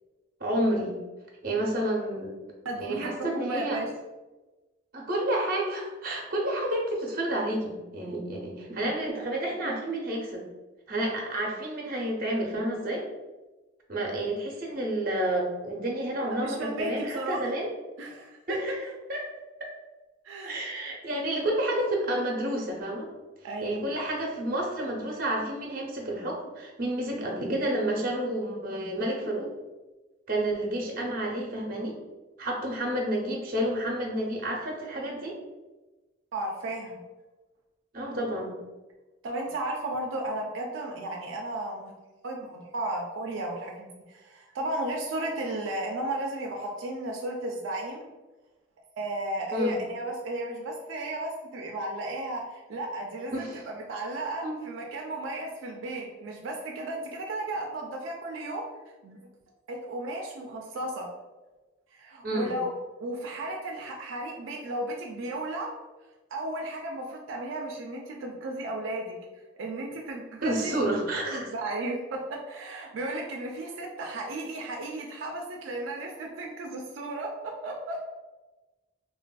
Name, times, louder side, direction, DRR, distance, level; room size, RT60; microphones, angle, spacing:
voice 1, 0.4-1.0 1.4-2.3 2.8-3.8 4.9-10.4 10.9-13.0 13.9-17.7 18.5-19.3 20.4-23.1 23.6-29.5 30.3-32.0 32.4-35.4 37.9-38.5 49.5-49.8 53.3-53.6 54.4-54.6 62.2-62.5 70.4-71.4, right 1 dB, 45° right, -1 dB, 0.7 m, -30 dB
voice 2, 2.6-3.9 16.2-17.4 18.0-18.4 20.2-20.6 23.4-23.9 36.3-37.0 39.2-41.9 42.2-48.1 49.0-58.7 59.0-59.2 59.7-61.1 61.9-62.7 63.0-65.7 66.3-69.2 69.6-70.7 71.3-78.0, right 1 dB, 80° right, 0 dB, 0.4 m, -34 dB
3.2 x 2.4 x 2.2 m, 1.1 s
head